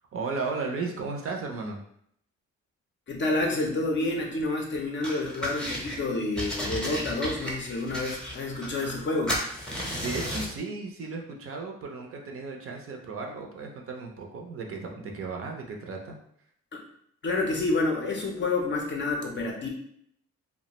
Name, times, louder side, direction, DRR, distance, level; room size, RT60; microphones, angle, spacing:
voice 1, 0.1-1.8 9.9-16.2, right 4 dB, 50° right, 2 dB, 0.5 m, -35 dB
voice 2, 3.1-9.4 16.7-16.8 17.2-19.7, left 2 dB, 40° left, 1 dB, 0.5 m, -29 dB
sound 1, 5.0-6.0 6.4-9.0 9.3-10.6, equal, 5° left, 0.7 m, -33 dB
2.2 x 2.1 x 2.9 m, 0.68 s
cardioid pair, 90°, 30 cm